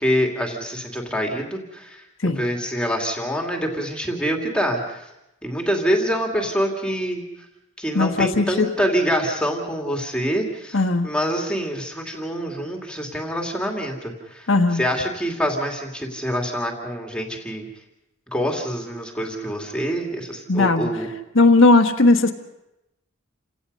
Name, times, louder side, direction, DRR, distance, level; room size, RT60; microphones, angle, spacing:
voice 1, 0.0-2.0 2.4-5.1 5.4-7.2 7.8-17.7 18.3-21.1, equal, 5° left, 1 dB, 2.4 m, -25 dB
voice 2, 7.9-8.7 10.7-11.1 14.5-14.8 20.5-20.9 21.3-22.3, left 3 dB, 65° left, 4 dB, 1.4 m, -17 dB
29.0 x 18.0 x 5.4 m, 0.91 s
head